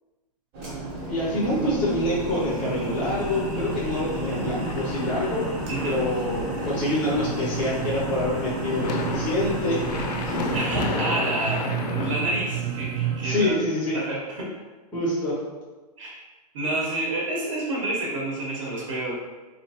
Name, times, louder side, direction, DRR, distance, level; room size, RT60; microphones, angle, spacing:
sound 1, 0.5-10.6, right 2 dB, 25° right, 0.9 m, -31 dB
voice 1, 1.1-5.5 5.8-9.8 10.2-10.4 13.2-14.0 14.9-15.4, left 1 dB, 5° left, -7 dB, 0.5 m, -26 dB
sound 2, 4.4-12.1, left 3 dB, 85° left, 0.6 m, -33 dB
sound 3, 7.0-13.5, right 10 dB, 75° right, 0.4 m, -32 dB
voice 2, 10.5-13.6 13.9-14.5 16.0-16.2 16.5-19.1, right 2 dB, 50° right, -4 dB, 0.9 m, -29 dB
3.9 x 3.0 x 2.8 m, 1.3 s
supercardioid pair, 180°, 21 cm